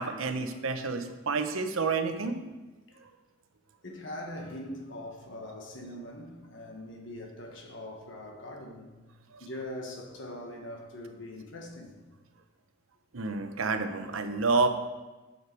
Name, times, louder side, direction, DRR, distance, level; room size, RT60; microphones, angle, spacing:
voice 1, 0.0-2.4 9.3-9.4 13.1-14.7, right 4 dB, 85° right, 0.8 m, -29 dB
voice 2, 3.8-8.9 9.4-11.9, left 1 dB, 65° left, 1.5 m, -42 dB
9.7 x 6.6 x 4.6 m
head